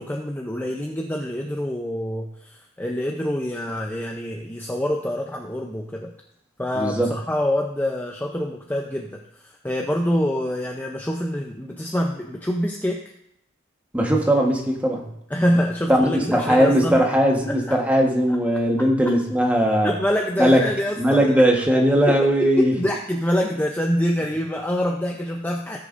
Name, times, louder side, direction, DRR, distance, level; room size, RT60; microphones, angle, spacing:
voice 1, 0.0-6.1 6.6-13.0 15.3-17.0 17.5-17.8 19.8-21.4 22.1-22.2 22.6-25.8, equal, 10° left, 0 dB, 0.6 m, -26 dB
voice 2, 6.7-7.1 13.9-15.1 15.9-19.9 20.4-20.6 21.0-22.7, equal, 5° right, 0 dB, 1.3 m, -19 dB
18.5 x 6.6 x 2.6 m, 0.75 s
head